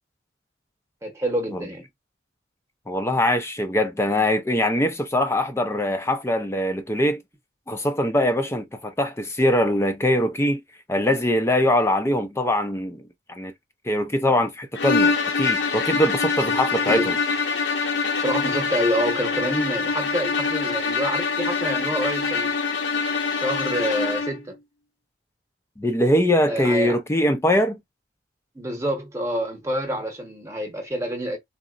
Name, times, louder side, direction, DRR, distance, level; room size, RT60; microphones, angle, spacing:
voice 1, 1.0-1.9 16.9-17.1 18.2-22.6 23.3-24.6 26.5-27.0 28.5-31.4, equal, 15° right, 0.9 m, -27 dB
voice 2, 2.9-7.2 7.7-10.6 10.9-13.5 13.9-17.2 25.8-27.8, left 1 dB, 15° left, 0.4 m, -22 dB
sound 1, 14.7-24.4, left 4 dB, 70° left, 0.8 m, -24 dB
3.8 x 2.0 x 2.4 m
head